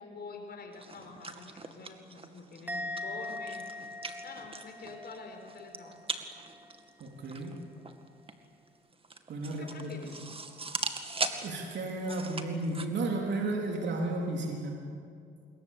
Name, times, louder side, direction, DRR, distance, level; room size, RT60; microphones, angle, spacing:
voice 1, 0.0-4.0 4.2-6.0 9.5-10.2 12.1-12.3, left 4 dB, 55° left, 4 dB, 4.9 m, -47 dB
sound 1, 0.7-12.8, right 3 dB, 30° right, 2.1 m, -41 dB
Musical instrument, 2.7-6.1 6.3-6.8, left 2 dB, 10° right, 1.5 m, -41 dB
voice 2, 7.0-7.6 9.3-9.9 11.4-14.8, right 2 dB, 65° right, 0 dB, 3.5 m, -33 dB
25.5 x 22.0 x 8.5 m, 2.4 s
cardioid pair, 90°, 20 cm